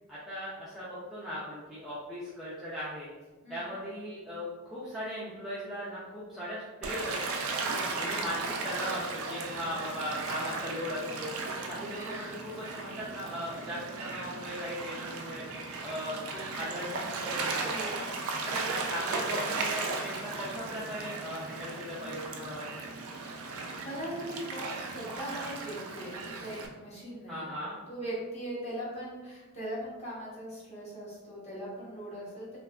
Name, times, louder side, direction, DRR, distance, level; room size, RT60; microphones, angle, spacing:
voice 1, 0.1-3.1 3.5-7.4 8.0-11.3 11.7-15.5 15.8-17.9 18.4-22.9 27.3-27.8, equal, ahead, -10 dB, 0.4 m, -38 dB
Gull seagull / Waves surf, 6.8-26.7, right 3 dB, 80° right, 0.4 m, -36 dB
voice 2, 7.6-8.0 9.5-9.8 17.6-18.5 23.5-27.6 27.9-32.6, right 1 dB, 30° left, -7 dB, 0.8 m, -40 dB
2.7 x 2.4 x 2.2 m, 1.2 s
head